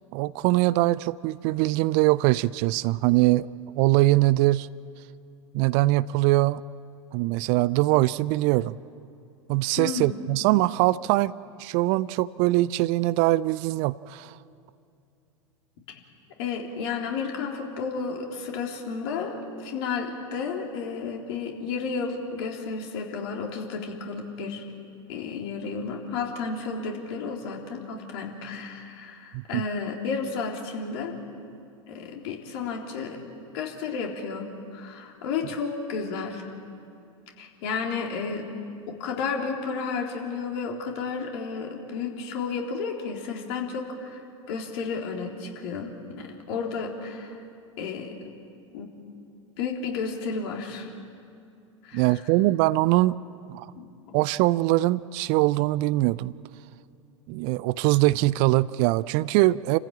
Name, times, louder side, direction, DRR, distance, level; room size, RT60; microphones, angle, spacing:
voice 1, 0.1-3.5 3.7-4.7 5.5-6.6 7.1-8.8 9.5-11.3 11.6-14.4 29.3-29.6 51.9-53.2 53.5-53.7 54.1-56.3 57.3-59.8, right 18 dB, 45° right, 19 dB, 0.5 m, -22 dB
voice 2, 9.8-10.1 16.4-24.6 25.1-31.2 31.9-33.2 33.5-36.5 37.4-38.5 38.9-44.2 44.5-47.4 47.8-48.1 48.7-48.9 49.6-50.9 51.8-52.1 53.8-54.1, left 5 dB, 55° left, 1 dB, 3.7 m, -32 dB
28.5 x 15.0 x 9.0 m, 2.6 s
figure-of-eight pair, 85°, 16 cm